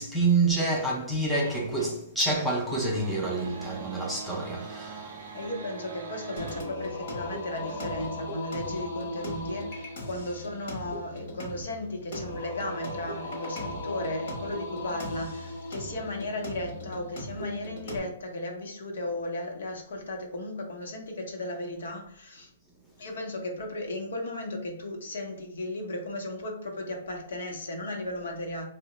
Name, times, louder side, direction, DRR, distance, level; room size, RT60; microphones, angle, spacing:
voice 1, 0.0-5.1, right 3 dB, ahead, 0.4 m, -27 dB
sound 1, 1.3-2.0 2.3-6.6, right 4 dB, 60° right, 0.5 m, -41 dB
voice 2, 5.3-22.5 23.0-28.6, left 1 dB, 80° left, 0.8 m, -35 dB
Singing, 6.4-18.0, left 1 dB, 45° left, 1.0 m, -37 dB
2.8 x 2.1 x 3.9 m
hypercardioid pair, 175°, 0 cm